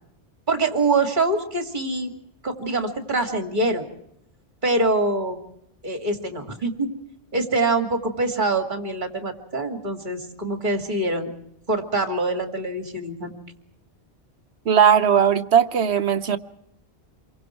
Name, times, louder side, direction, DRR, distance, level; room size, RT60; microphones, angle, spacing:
voice 1, 0.5-2.1 2.4-3.9 4.6-5.4 5.8-6.9 7.3-11.3 11.7-13.3, right 2 dB, 45° right, 6 dB, 2.8 m, -24 dB
voice 2, 14.7-16.4, right 8 dB, 75° right, 11 dB, 1.3 m, -18 dB
28.0 x 23.5 x 4.6 m, 0.75 s
omnidirectional pair, 1.1 m